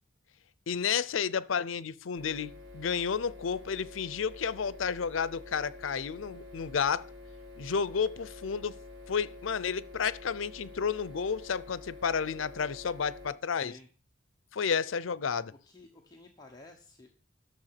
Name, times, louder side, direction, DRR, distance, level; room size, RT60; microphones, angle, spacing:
voice 1, 0.7-7.1 7.6-8.8 9.1-13.7 14.5-15.5, left 6 dB, 85° left, 0.6 m, -31 dB
sound 1, 2.1-13.3, left 2 dB, 80° right, 2.6 m, -48 dB
voice 2, 15.7-17.1, left 2 dB, 20° left, 1.0 m, -52 dB
12.0 x 6.9 x 5.8 m
head